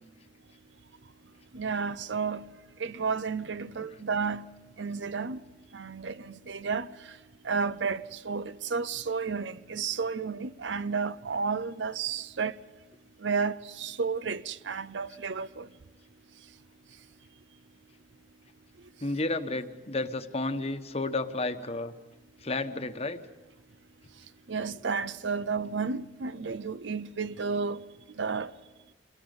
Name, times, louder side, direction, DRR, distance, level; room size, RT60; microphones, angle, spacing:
voice 1, 1.5-2.5 2.8-4.5 4.8-5.4 5.7-7.1 7.4-12.6 13.2-15.7 24.5-27.8 28.2-28.5, right 5 dB, 75° right, 0.7 m, -32 dB
voice 2, 19.0-21.9 22.4-23.2, left 2 dB, 35° left, 1.1 m, -31 dB
27.5 x 21.5 x 5.4 m
head